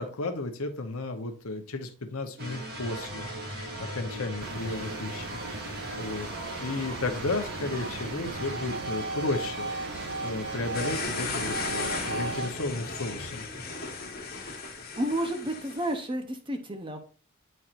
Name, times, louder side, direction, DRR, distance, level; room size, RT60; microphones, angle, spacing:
voice 1, 0.0-6.3 6.6-13.5, left 2 dB, 70° left, 6 dB, 0.9 m, -34 dB
sound 1, 2.4-12.5, right 1 dB, 45° right, 2.0 m, -36 dB
sound 2, 4.4-12.4, right 4 dB, 80° right, 0.7 m, -41 dB
sound 3, 10.7-16.0, left 4 dB, 45° left, 1.3 m, -36 dB
voice 2, 15.0-17.0, right 1 dB, 20° right, 6 dB, 0.8 m, -31 dB
9.3 x 4.3 x 2.5 m, 0.38 s
head